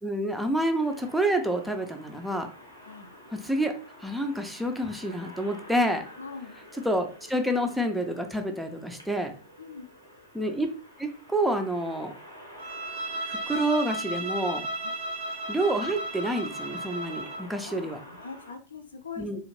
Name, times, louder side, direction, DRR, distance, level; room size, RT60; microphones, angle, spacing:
voice 1, 0.0-2.5 3.3-3.7 4.0-6.0 6.8-9.3 10.3-10.7 11.0-12.1 13.3-14.6 15.5-18.0 19.2-19.4, right 1 dB, ahead, 4 dB, 0.4 m, -28 dB
sound 1, 0.7-18.5, equal, 85° right, 0.8 m, -49 dB
voice 2, 6.2-6.6 9.6-9.9 17.1-17.2 17.6-19.4, left 5 dB, 75° left, 6 dB, 0.4 m, -42 dB
Bowed string instrument, 12.6-17.5, right 1 dB, 50° right, 0.5 m, -34 dB
2.8 x 2.4 x 2.9 m, 0.39 s
figure-of-eight pair, 90°, 0 cm